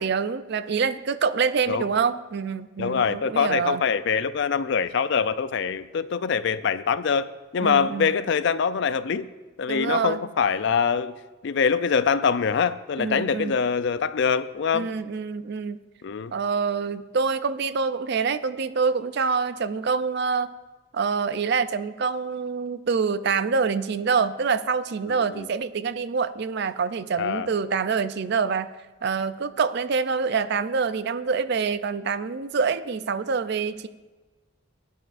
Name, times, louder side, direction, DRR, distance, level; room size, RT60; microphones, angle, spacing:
voice 1, 0.0-3.8 7.6-8.1 9.7-10.2 13.0-13.5 14.7-15.8 16.3-20.5 20.9-28.7 29.0-33.9, right 5 dB, 50° right, 0.4 m, -26 dB
voice 2, 2.8-7.3 7.5-9.3 9.6-11.2 11.4-14.9 16.0-16.3 25.1-25.5 27.2-27.5, left 6 dB, 55° left, 0.4 m, -24 dB
17.0 x 10.0 x 2.5 m
head